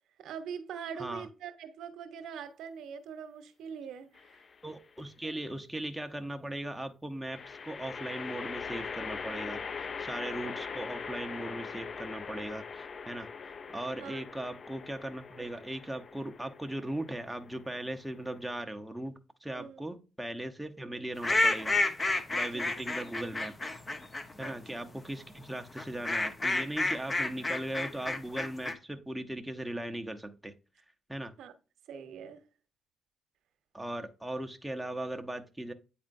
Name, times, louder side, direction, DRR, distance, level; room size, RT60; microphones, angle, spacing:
voice 1, 0.2-4.4 5.2-5.4 14.0-14.2 19.5-19.8 22.5-22.7 24.4-24.6 31.4-31.5 31.9-32.4, right 7 dB, 80° right, 0.9 m, -43 dB
sound 1, 4.1-4.7 7.3-18.6, left 5 dB, 45° left, 0.3 m, -42 dB
voice 2, 4.6-22.0 22.3-23.8 24.4-30.5 31.1-31.3 33.7-35.7, right 1 dB, 5° right, 0.8 m, -39 dB
sound 2, 21.2-24.5 25.8-28.7, left 2 dB, 25° left, 0.9 m, -30 dB
8.6 x 4.3 x 2.6 m
cardioid pair, 90°, 0 cm